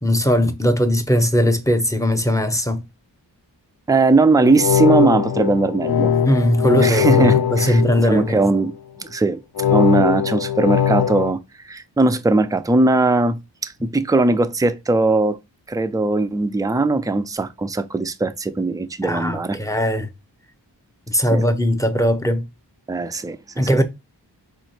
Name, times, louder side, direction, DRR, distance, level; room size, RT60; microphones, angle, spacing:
voice 1, 0.0-2.8 6.2-8.5 19.0-20.1 21.1-22.4 23.6-23.8, equal, 5° left, 0.8 m, -19 dB
voice 2, 3.9-6.1 6.8-8.7 9.0-9.4 9.7-11.4 11.6-15.4 15.7-19.6 21.3-21.4 22.9-23.8, right 3 dB, 10° right, 0.4 m, -19 dB
sound 1, 4.3-8.7 9.6-11.3, left 9 dB, 60° left, 0.7 m, -20 dB
3.9 x 3.1 x 4.3 m
cardioid pair, 40°, 44 cm